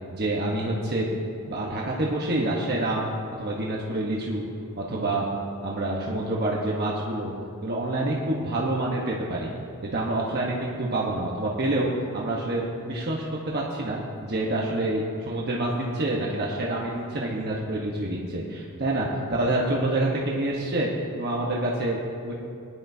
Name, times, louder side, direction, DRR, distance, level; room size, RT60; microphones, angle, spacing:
voice 1, 0.1-1.1 1.4-3.1 3.4-4.4 4.7-5.3 5.6-7.3 7.6-9.5 9.8-20.9 21.1-22.0 22.2-22.3, right 1 dB, 45° right, -3 dB, 1.2 m, -27 dB
19.5 x 10.0 x 2.8 m, 2.5 s
head